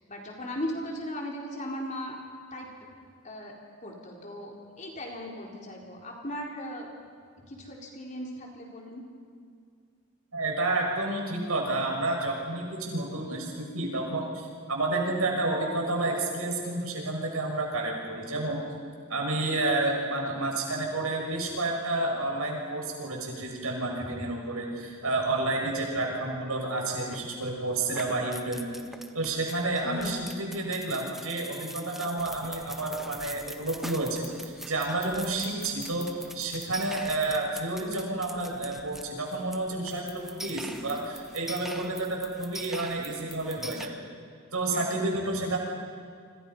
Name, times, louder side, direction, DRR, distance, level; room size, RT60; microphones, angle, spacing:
voice 1, 0.1-2.2 2.5-2.7 3.2-3.5 3.8-6.9 7.5-9.0 24.0-24.1 25.9-26.0 29.8-30.3 44.7-45.3, equal, 35° left, -1 dB, 4.2 m, -38 dB
voice 2, 10.3-18.6 19.1-28.7 29.1-43.9 44.5-45.6, right 2 dB, 80° right, 0 dB, 6.5 m, -30 dB
sound 1, 27.1-27.5 27.9-43.9, right 1 dB, ahead, 1.0 m, -43 dB
29.0 x 25.5 x 5.7 m, 2.2 s
head